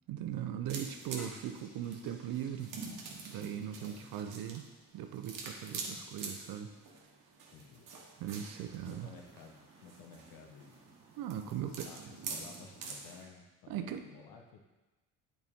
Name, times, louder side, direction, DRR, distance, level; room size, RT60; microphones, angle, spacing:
voice 1, 0.1-2.7 3.3-4.7 4.9-6.7 8.2-9.1 11.2-11.9 13.7-14.0, right 10 dB, 85° right, 7 dB, 0.7 m, -39 dB
sound 1, 0.7-13.3, right 4 dB, 65° right, 1.3 m, -47 dB
sound 2, 1.1-6.4 6.9-7.0, left 1 dB, 20° left, 2.3 m, -60 dB
voice 2, 3.7-4.2 7.5-8.0 8.8-10.8 11.5-14.7, left 5 dB, 80° left, 2 dB, 1.1 m, -54 dB
sound 3, 8.2-13.1, right 3 dB, 15° right, 1.9 m, -63 dB
8.3 x 4.5 x 3.6 m, 1.1 s
cardioid pair, 90°, 35 cm